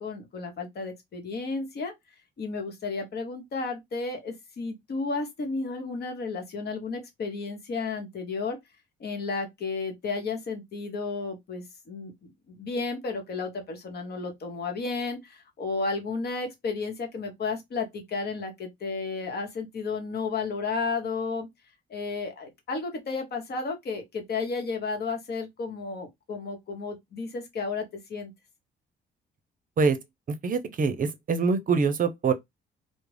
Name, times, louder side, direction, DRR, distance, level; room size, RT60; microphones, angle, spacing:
voice 1, 0.0-1.9 2.4-8.6 9.0-21.5 21.9-28.3, left 4 dB, 55° left, 1.0 m, -33 dB
voice 2, 30.3-32.3, right 5 dB, 45° right, 0.6 m, -24 dB
2.4 x 2.1 x 3.2 m
cardioid pair, 90°, 20 cm